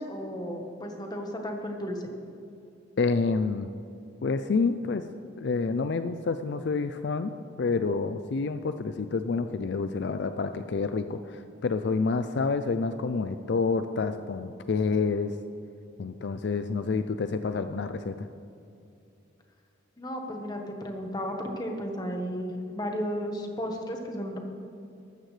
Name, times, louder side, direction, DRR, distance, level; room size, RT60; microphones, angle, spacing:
voice 1, 0.0-2.1 20.0-24.4, equal, 20° left, 2 dB, 1.2 m, -34 dB
voice 2, 3.0-3.7 4.2-5.0 5.4-7.3 7.6-15.4 16.0-18.3, left 4 dB, 60° left, 9 dB, 0.4 m, -28 dB
14.0 x 12.5 x 3.3 m, 2.6 s
head